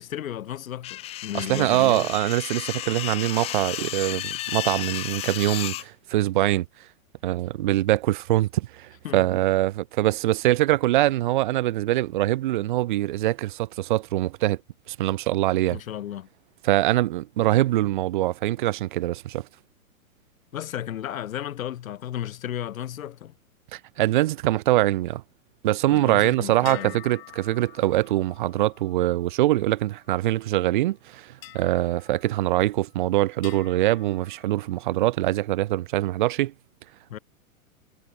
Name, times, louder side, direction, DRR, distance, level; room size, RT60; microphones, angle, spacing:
voice 1, 0.0-2.1 9.0-9.3 15.7-16.3 20.5-23.3 25.9-27.0 37.1-37.2, left 11 dB, 70° left, 3.1 m, -34 dB
sound 1, 0.8-5.8, left 15 dB, 15° left, 0.8 m, -33 dB
voice 2, 1.3-6.7 7.2-14.6 14.9-15.8 16.6-19.5 23.7-25.2 25.6-36.5, right 16 dB, 35° right, 0.6 m, -23 dB
sound 2, 26.6-30.3 31.4-33.0 33.4-35.1, left 19 dB, 40° left, 2.9 m, -48 dB
hypercardioid pair, 160°, 43 cm